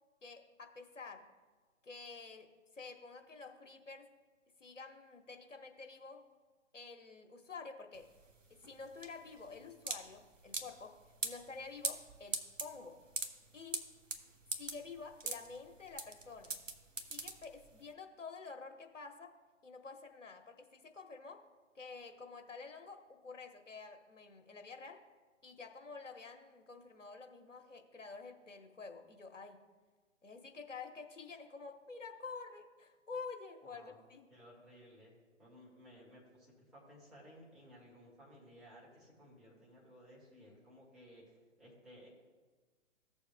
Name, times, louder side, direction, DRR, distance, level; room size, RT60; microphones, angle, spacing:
voice 1, 0.2-1.3 1.8-4.1 4.6-6.2 6.7-8.1 8.5-13.0 13.5-13.8 14.6-16.6 17.1-19.4 19.6-21.5 21.7-25.0 25.4-29.6 30.2-34.3, left 4 dB, 70° left, 5 dB, 1.2 m, -49 dB
sound 1, 7.9-17.9, right 3 dB, 75° right, 1.1 m, -42 dB
voice 2, 33.6-34.0 34.3-35.1 35.4-42.1, equal, ahead, -8 dB, 1.9 m, -58 dB
15.0 x 6.9 x 2.3 m, 1.3 s
figure-of-eight pair, 135°, 38 cm